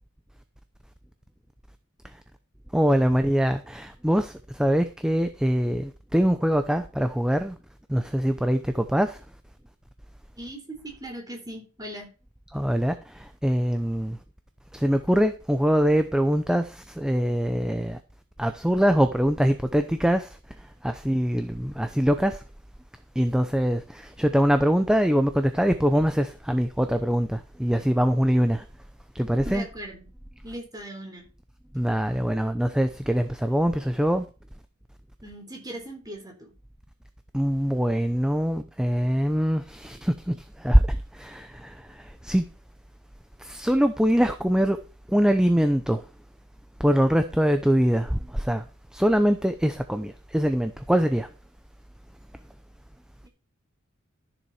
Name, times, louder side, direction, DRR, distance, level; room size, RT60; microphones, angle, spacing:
voice 1, 2.7-7.6 7.9-9.2 12.5-14.2 14.7-18.0 18.4-20.3 20.8-22.4 23.2-28.6 29.1-29.6 31.7-34.3 37.3-42.5 43.4-44.8 45.1-46.0 46.8-48.6 48.9-51.3, equal, 5° right, 0.7 m, -23 dB
voice 2, 10.4-12.1 29.4-30.1 30.4-31.3 35.2-36.5 53.2-53.3, right 1 dB, 20° right, 3.8 m, -39 dB
13.5 x 7.1 x 4.9 m
head